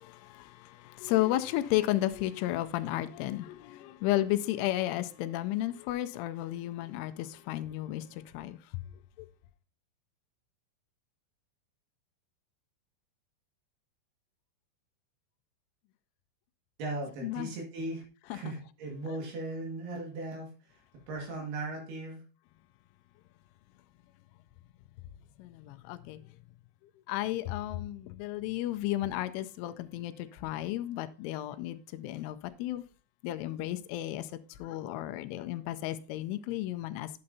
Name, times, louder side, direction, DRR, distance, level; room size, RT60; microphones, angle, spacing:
voice 1, 0.0-8.8 17.2-17.5 18.3-18.4 25.4-26.2 27.1-32.8 33.2-34.3 34.6-37.1, left 15 dB, 85° left, 3.0 m, -33 dB
voice 2, 16.8-18.0 18.3-20.8 21.1-22.2, right 2 dB, 60° right, 3.5 m, -38 dB
8.7 x 8.5 x 2.7 m
omnidirectional pair, 5.7 m